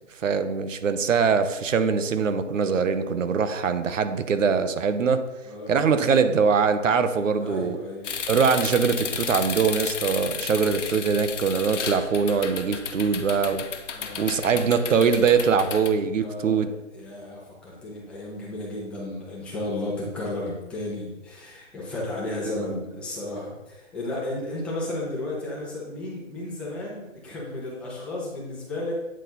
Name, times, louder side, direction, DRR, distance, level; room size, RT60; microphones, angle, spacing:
voice 1, 0.2-5.2 5.7-7.8 8.3-13.6 14.2-16.7, right 6 dB, 90° right, 10 dB, 0.9 m, -22 dB
voice 2, 5.4-5.8 7.3-8.1 13.9-14.6 16.2-29.0, left 2 dB, 5° left, -6 dB, 0.8 m, -33 dB
sound 1, 8.0-15.9, left 7 dB, 70° left, 0.9 m, -33 dB
8.8 x 4.2 x 4.0 m, 1.0 s
hypercardioid pair, 165°, 37 cm